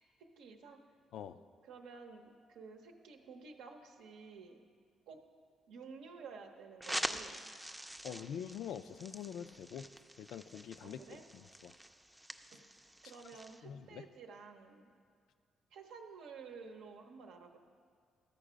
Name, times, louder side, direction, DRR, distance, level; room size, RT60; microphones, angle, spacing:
voice 1, 0.2-0.8 1.6-4.6 5.1-5.2 5.7-7.4 8.1-8.2 10.8-11.2 12.5-12.6 13.0-14.8 15.7-17.6, right 5 dB, 90° right, 3 dB, 0.7 m, -52 dB
sound 1, 6.8-13.6, right 1 dB, 5° right, 0.4 m, -45 dB
voice 2, 8.0-9.8 10.2-11.0 11.3-11.7 13.6-14.1, left 9 dB, 80° left, 11 dB, 0.3 m, -45 dB
13.0 x 4.5 x 5.0 m, 2.1 s
cardioid pair, 90°, 0 cm